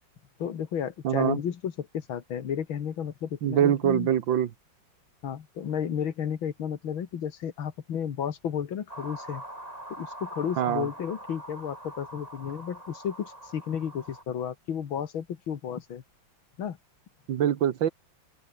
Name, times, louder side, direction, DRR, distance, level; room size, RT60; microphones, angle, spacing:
voice 1, 0.4-4.1 5.2-9.4 9.9-16.0 16.6-16.8, left 8 dB, 90° left, 2.5 m, -33 dB
voice 2, 1.0-1.4 3.4-4.5 10.6-10.9 17.3-17.9, right 10 dB, 70° right, 1.9 m, -24 dB
sound 1, 8.9-14.2, right 1 dB, 20° right, 7.3 m, -43 dB
open air
omnidirectional pair, 2.2 m